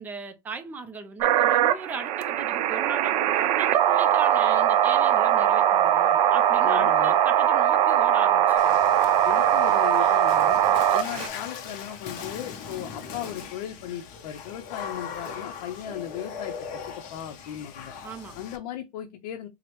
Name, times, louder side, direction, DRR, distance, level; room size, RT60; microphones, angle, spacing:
voice 1, 0.0-8.8 18.0-18.4, right 5 dB, 10° right, 0.4 m, -38 dB
sound 1, 1.2-11.3, right 10 dB, 80° right, 0.5 m, -21 dB
voice 2, 6.6-7.2 9.2-10.6 10.9-17.9 18.4-19.5, left 11 dB, 75° left, 0.6 m, -37 dB
Water / Splash splatter, 8.6-18.6, left 6 dB, 40° left, 0.7 m, -39 dB
4.7 x 2.0 x 2.9 m
supercardioid pair, 160°, 20 cm